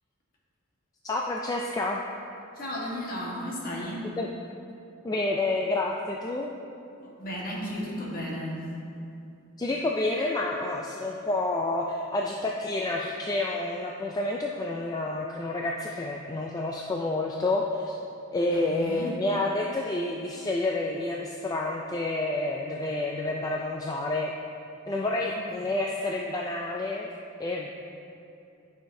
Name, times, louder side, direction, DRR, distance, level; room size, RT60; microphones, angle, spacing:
voice 1, 1.0-2.0 4.2-4.3 5.0-6.5 9.6-18.0 18.3-24.3 24.9-27.1 27.4-27.7, left 2 dB, 15° left, -1 dB, 0.3 m, -29 dB
voice 2, 2.5-4.1 7.0-8.7 18.5-19.2 25.2-25.4, equal, 40° left, -5 dB, 1.5 m, -34 dB
11.0 x 5.7 x 2.7 m, 2.7 s
head